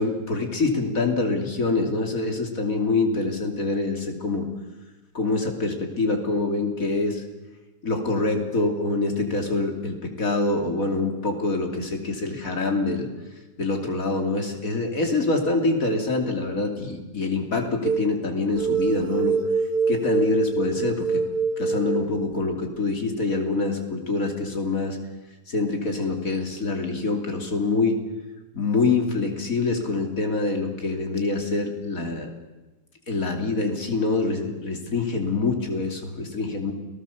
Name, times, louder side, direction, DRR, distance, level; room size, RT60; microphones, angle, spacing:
voice 1, 0.0-4.5 5.1-7.2 7.8-13.1 13.6-19.4 19.9-21.2 21.6-25.0 25.5-28.0 28.5-32.3 33.1-36.7, left 3 dB, 55° left, 3 dB, 3.4 m, -25 dB
sound 1, 17.8-18.1 18.6-22.4, right 5 dB, 70° right, 1.6 m, -25 dB
29.5 x 19.0 x 7.1 m, 1.1 s
omnidirectional pair, 1.7 m